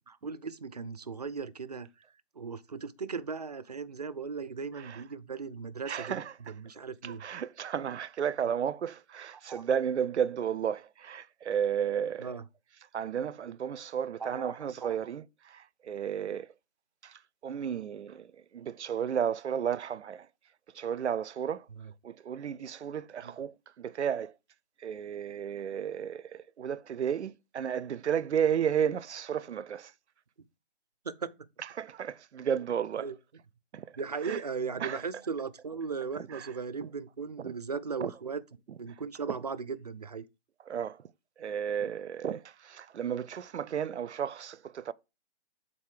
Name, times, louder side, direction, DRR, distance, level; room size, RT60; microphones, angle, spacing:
voice 1, 0.1-1.9 2.4-7.2 9.5-9.6 12.2-12.4 14.2-15.0 21.8-21.9 23.2-23.3 31.0-31.3 33.0-33.2 34.0-38.4 38.8-40.3, right 5 dB, 40° right, 0.4 m, -37 dB
voice 2, 5.9-6.3 7.0-12.3 12.9-16.5 17.0-20.3 20.7-21.7 22.0-24.3 24.8-29.9 31.8-33.1 33.7-33.9 34.2-34.4 34.8-35.0 36.2-36.5 36.8-36.9 37.4-37.5 38.0-38.1 40.7-41.0 41.4-44.9, right 8 dB, 85° right, 0.5 m, -33 dB
7.3 x 4.1 x 4.8 m
hypercardioid pair, 160°, 34 cm